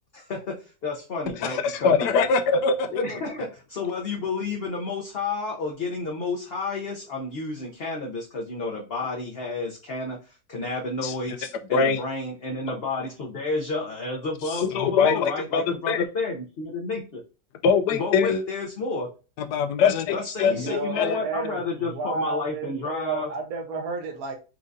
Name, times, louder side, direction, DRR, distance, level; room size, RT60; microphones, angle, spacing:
voice 1, 0.1-1.9 2.9-17.2 17.9-19.1 20.1-23.3, left 3 dB, 50° left, 0.8 m, -31 dB
voice 2, 1.3-2.9 11.0-11.4 11.7-12.0 14.4-16.0 17.6-18.4 19.4-21.2, left 5 dB, 85° left, 1.2 m, -23 dB
voice 3, 20.5-24.4, right 4 dB, 65° right, 1.3 m, -32 dB
4.5 x 3.7 x 2.6 m
omnidirectional pair, 1.8 m